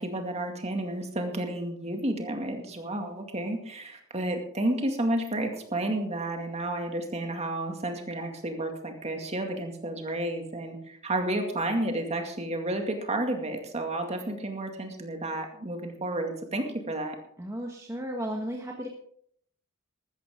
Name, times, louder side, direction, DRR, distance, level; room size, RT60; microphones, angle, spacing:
voice 1, 0.0-17.2, right 1 dB, 30° right, 4 dB, 2.2 m, -31 dB
voice 2, 17.4-18.9, equal, 15° right, 0 dB, 1.4 m, -34 dB
15.0 x 13.0 x 3.7 m, 0.65 s
head